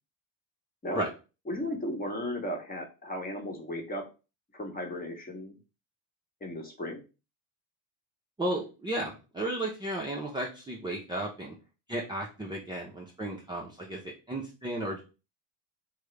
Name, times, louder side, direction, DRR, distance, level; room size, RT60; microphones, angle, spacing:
voice 1, 1.5-4.1 4.5-5.5 6.4-7.0, left 1 dB, 20° left, 2 dB, 1.1 m, -35 dB
voice 2, 8.4-11.5 11.9-15.0, right 1 dB, 10° right, -3 dB, 0.6 m, -34 dB
3.5 x 2.1 x 3.3 m, 0.31 s
supercardioid pair, 90°, 45 cm